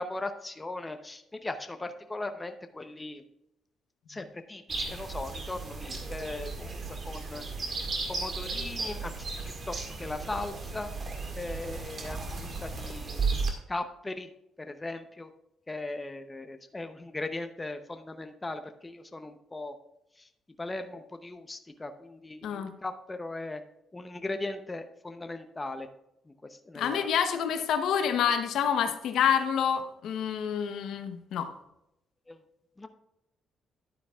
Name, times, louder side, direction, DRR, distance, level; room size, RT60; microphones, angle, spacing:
voice 1, 0.0-3.2 4.1-7.4 8.1-9.3 9.7-10.9 11.4-13.3 13.7-14.3 14.7-15.3 15.7-19.7 20.6-23.6 23.9-25.9 26.7-27.1 32.3-32.4 32.8-32.9, left 2 dB, 20° left, 8 dB, 0.7 m, -38 dB
sound 1, 4.7-13.5, right 4 dB, 45° right, 1.9 m, -35 dB
voice 2, 26.7-31.5, left 8 dB, 80° left, 7 dB, 0.9 m, -28 dB
11.5 x 9.1 x 2.4 m, 0.83 s
cardioid pair, 90°, 0 cm